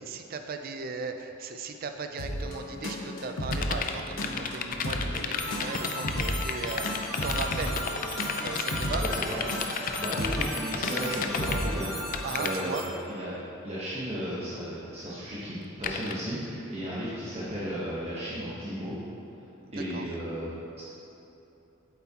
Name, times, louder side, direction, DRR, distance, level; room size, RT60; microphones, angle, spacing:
voice 1, 0.0-7.8 8.4-9.0 12.2-12.8 19.9-20.0, right 4 dB, 45° right, 6 dB, 0.5 m, -37 dB
sound 1, 2.2-12.0, equal, 80° left, 0.9 m, -35 dB
sound 2, 3.4-11.6 11.9-12.6 15.8-16.1, left 6 dB, 45° left, 0.4 m, -32 dB
sound 3, 5.4-12.8, left 1 dB, ahead, 1.1 m, -37 dB
voice 2, 9.0-11.9 12.4-18.9 19.7-20.8, equal, 30° right, -9 dB, 1.2 m, -35 dB
8.3 x 7.5 x 2.9 m, 3.0 s
head